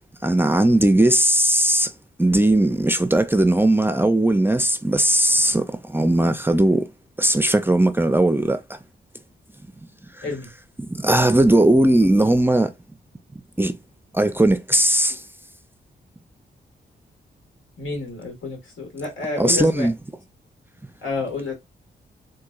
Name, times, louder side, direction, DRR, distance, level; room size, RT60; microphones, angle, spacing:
voice 1, 0.2-1.9 2.2-6.9 7.2-8.8 10.2-10.3 10.8-12.7 13.6-13.7 14.1-15.2 19.4-20.0, right 1 dB, 10° right, 0.4 m, -18 dB
voice 2, 17.8-19.9 21.0-21.5, left 3 dB, 80° left, 1.8 m, -29 dB
3.9 x 2.6 x 2.4 m
cardioid pair, 75°, 20 cm